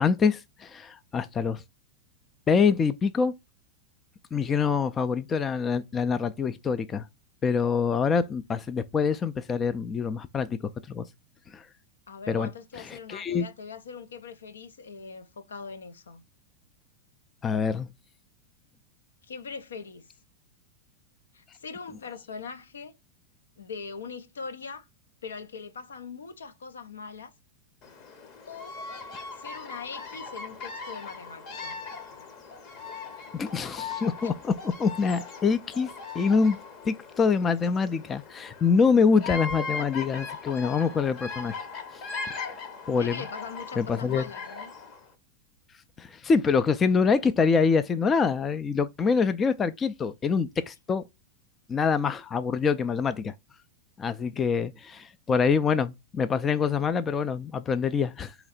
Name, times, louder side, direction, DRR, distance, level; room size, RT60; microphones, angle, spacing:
voice 1, 0.0-1.6 2.5-3.3 4.3-7.1 7.4-11.1 11.5-11.7 12.3-12.5 12.8-13.5 17.4-17.9 33.3-36.6 36.9-41.6 42.3-42.4 42.9-43.2 43.8-44.2 46.0-51.0 51.7-53.3 54.0-58.3, left 5 dB, 20° left, 0.4 m, -25 dB
voice 2, 12.1-16.2 19.2-20.1 21.3-22.9 23.6-24.9 25.2-27.3 28.5-28.8 29.4-31.8 34.2-34.3 42.9-44.7, left 5 dB, 65° left, 0.5 m, -41 dB
Bird vocalization bird call bird song, 27.8-45.1, left 4 dB, 35° left, 0.9 m, -39 dB
3.9 x 2.9 x 4.2 m
figure-of-eight pair, 90°, 0 cm